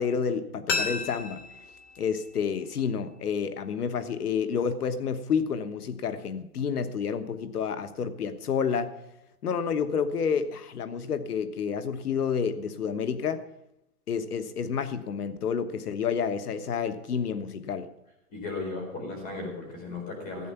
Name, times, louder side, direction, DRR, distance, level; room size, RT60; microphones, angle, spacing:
voice 1, 0.0-1.4 2.0-8.9 9.4-13.4 14.1-17.9, left 6 dB, 90° left, 10 dB, 1.3 m, -29 dB
sound 1, 0.7-3.5 3.8-3.9, left 4 dB, 45° left, 2.4 m, -34 dB
voice 2, 18.3-20.5, left 3 dB, 20° left, 2 dB, 4.2 m, -36 dB
15.5 x 8.9 x 5.8 m, 0.86 s
hypercardioid pair, 165°, 45 cm